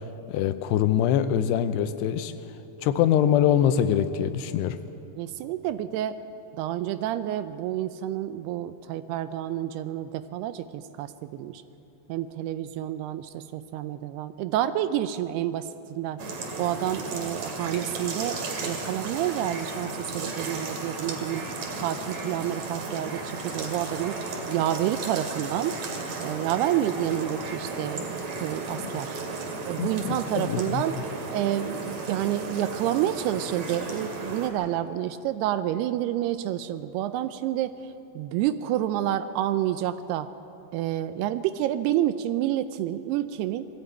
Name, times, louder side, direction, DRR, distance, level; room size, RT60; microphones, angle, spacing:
voice 1, 0.3-2.3 2.8-4.8 29.8-30.8, left 10 dB, 80° left, 11 dB, 2.8 m, -24 dB
voice 2, 5.2-6.2 6.6-11.6 12.1-16.3 16.6-21.4 21.8-24.2 24.5-25.8 26.2-29.2 29.7-31.0 31.3-40.3 40.7-43.7, right 12 dB, 80° right, 12 dB, 2.5 m, -29 dB
sound 1, 16.2-34.5, right 3 dB, 50° right, 2.9 m, -34 dB
21.0 x 15.0 x 8.9 m, 2.7 s
omnidirectional pair, 4.9 m